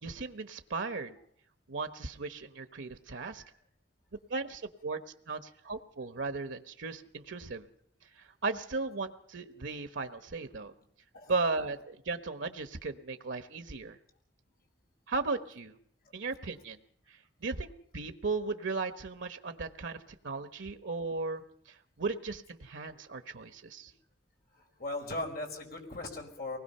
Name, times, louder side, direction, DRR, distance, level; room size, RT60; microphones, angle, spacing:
voice 1, 0.0-1.2 1.7-3.4 4.3-5.0 5.3-7.7 8.1-10.7 11.3-14.0 15.1-15.7 16.1-16.8 17.1-20.0 20.2-23.9, right 3 dB, 90° right, 9 dB, 1.1 m, -36 dB
voice 2, 24.5-26.6, left 2 dB, 50° left, 3 dB, 4.8 m, -38 dB
24.5 x 19.5 x 5.6 m, 0.66 s
head